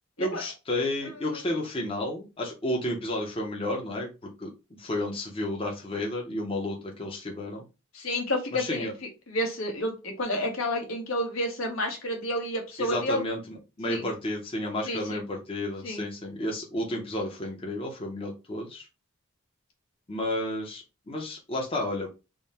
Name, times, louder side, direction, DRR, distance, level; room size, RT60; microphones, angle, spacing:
voice 1, 0.2-4.1 4.4-4.5 4.8-7.6 8.5-8.9 12.8-18.9 20.1-22.1, left 1 dB, 25° left, 0 dB, 0.7 m, -32 dB
voice 2, 7.9-8.9 9.3-13.2 13.9-14.1 14.9-15.2 15.8-16.0, left 1 dB, 80° left, 2 dB, 1.2 m, -30 dB
3.6 x 2.2 x 4.0 m, 0.29 s
head